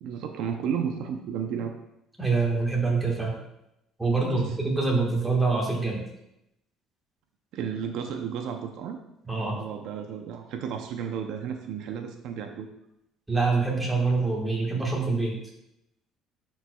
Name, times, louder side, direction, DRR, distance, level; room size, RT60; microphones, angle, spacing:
voice 1, 0.0-1.7 4.2-4.6 7.5-9.0 9.5-12.7, right 7 dB, 65° right, 5 dB, 0.6 m, -33 dB
voice 2, 2.2-3.4 4.0-6.0 9.3-9.5 13.3-15.4, right 3 dB, 5° right, -2 dB, 1.4 m, -25 dB
10.5 x 4.6 x 2.3 m, 0.83 s
cardioid pair, 145°, 0 cm